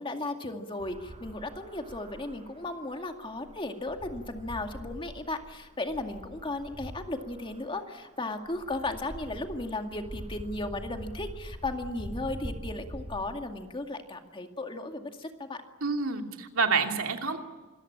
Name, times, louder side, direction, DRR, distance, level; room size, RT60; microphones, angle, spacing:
voice 1, 0.0-15.6, left 2 dB, 25° left, 5 dB, 2.2 m, -35 dB
sound 1, 0.8-13.3, right 1 dB, 30° right, 6.8 m, -44 dB
voice 2, 15.8-17.4, right 4 dB, 65° right, 4 dB, 2.8 m, -28 dB
26.5 x 21.5 x 8.8 m, 1.3 s
head